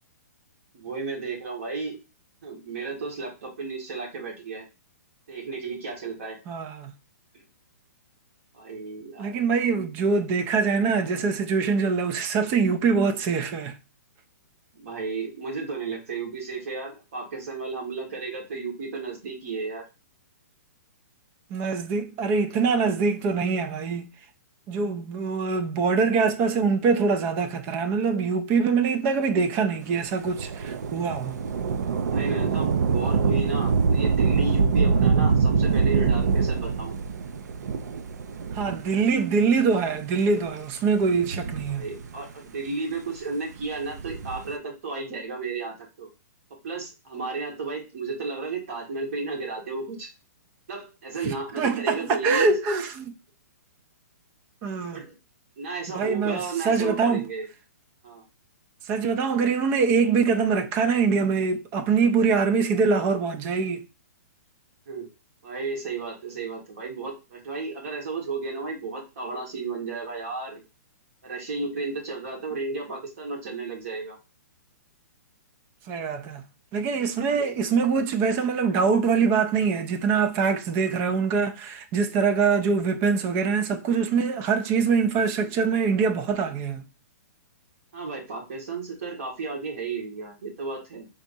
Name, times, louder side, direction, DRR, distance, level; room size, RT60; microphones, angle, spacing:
voice 1, 0.7-2.0 2.4-4.6 5.3-6.4 8.5-9.4 14.7-19.8 32.1-36.9 41.6-46.1 46.6-50.1 50.7-52.5 54.9-55.1 55.6-57.5 58.0-58.2 64.8-65.1 65.4-70.6 71.2-74.2 77.3-77.6 87.9-91.1, right 4 dB, 55° right, 1.8 m, -33 dB
voice 2, 6.5-6.9 9.2-13.8 21.5-24.1 24.7-31.4 38.5-41.8 51.2-53.1 54.6-55.0 55.9-57.3 58.9-63.8 75.9-76.4 76.7-86.8, right 5 dB, 20° right, 0.4 m, -24 dB
Thunder / Rain, 30.2-39.2 40.0-40.1 41.0-42.3 43.8-44.5, right 5 dB, 75° right, 0.6 m, -24 dB
5.1 x 3.5 x 2.7 m
hypercardioid pair, 160°, 9 cm